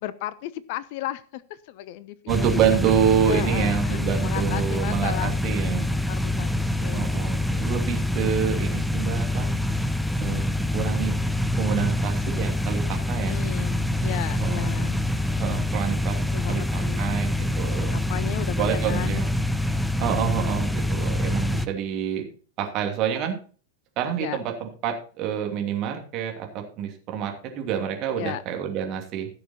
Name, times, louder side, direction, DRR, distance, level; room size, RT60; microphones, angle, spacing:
voice 1, 0.0-2.5 3.2-5.6 6.1-7.1 13.2-15.6 16.3-17.1 17.9-19.3 24.2-24.4 28.2-28.4, left 13 dB, 50° left, 18 dB, 0.6 m, -35 dB
sound 1, 2.3-21.7, left 1 dB, 5° left, 0.7 m, -25 dB
voice 2, 2.3-5.9 6.9-9.5 10.2-11.1 11.6-13.4 14.4-14.7 15.4-16.2 16.5-17.9 18.6-19.3 20.0-22.2 22.6-23.4 24.0-29.3, right 9 dB, 40° right, 3 dB, 2.8 m, -27 dB
16.0 x 6.7 x 4.2 m, 0.40 s
figure-of-eight pair, 90°, 0 cm